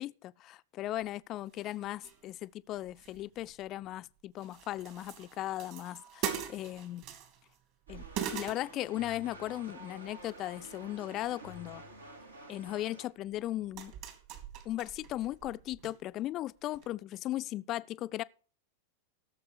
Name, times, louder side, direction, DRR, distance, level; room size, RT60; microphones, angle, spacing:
voice 1, 0.0-7.0 7.9-8.0 8.3-11.8 12.5-13.9 14.6-18.2, left 14 dB, 35° left, 0.4 m, -37 dB
sound 1, 1.0-1.1 1.5-2.5 2.8-4.0 4.4-7.6 7.9-9.3 10.0-10.9 11.2-11.7 12.7-12.8 13.3-15.9 16.2-16.3 16.7-16.9, right 8 dB, 45° right, 2.6 m, -43 dB
sound 2, 7.9-13.1, right 1 dB, 75° right, 2.4 m, -50 dB
17.0 x 7.1 x 4.9 m
figure-of-eight pair, 90°, 0 cm